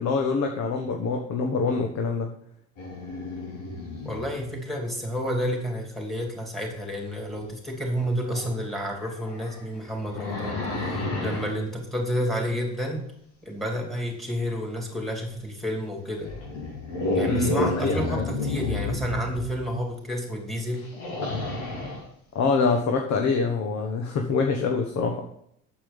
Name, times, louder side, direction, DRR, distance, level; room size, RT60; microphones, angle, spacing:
voice 1, 0.0-2.3 17.3-17.5 17.8-18.3 22.3-25.2, left 4 dB, 55° left, 3 dB, 1.4 m, -25 dB
sound 1, 2.8-4.4 7.3-7.4 8.2-8.5 9.1-11.5 15.3-15.4 16.1-19.6 20.8-22.0, left 2 dB, 85° left, 4.6 m, -30 dB
voice 2, 4.0-13.0 13.4-16.3 17.1-20.9, equal, ahead, 1 dB, 3.0 m, -30 dB
8.7 x 7.6 x 5.4 m, 0.71 s
cardioid pair, 130°, 33 cm